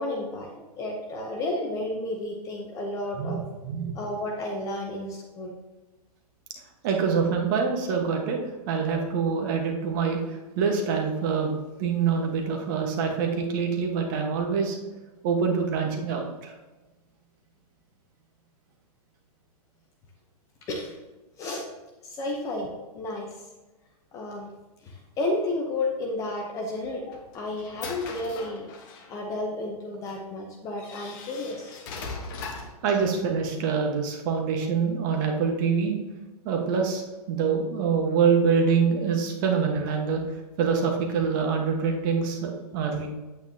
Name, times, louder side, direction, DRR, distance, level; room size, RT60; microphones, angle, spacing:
voice 1, 0.0-3.4 3.9-5.5 20.7-20.9 21.4-21.6 22.0-22.7 22.9-23.4 24.1-24.5 24.8-28.7 29.1-31.8, left 2 dB, 15° left, 1 dB, 0.7 m, -32 dB
voice 2, 3.2-3.9 6.8-8.4 8.7-14.8 15.2-16.5 32.8-36.0 36.4-40.2 40.6-43.1, right 6 dB, 30° right, 2 dB, 1.3 m, -25 dB
sound 1, 26.7-29.2 30.1-30.2 30.8-32.8, left 4 dB, 30° left, 1.2 m, -39 dB
8.7 x 8.7 x 2.8 m, 1.2 s
hypercardioid pair, 160°, 20 cm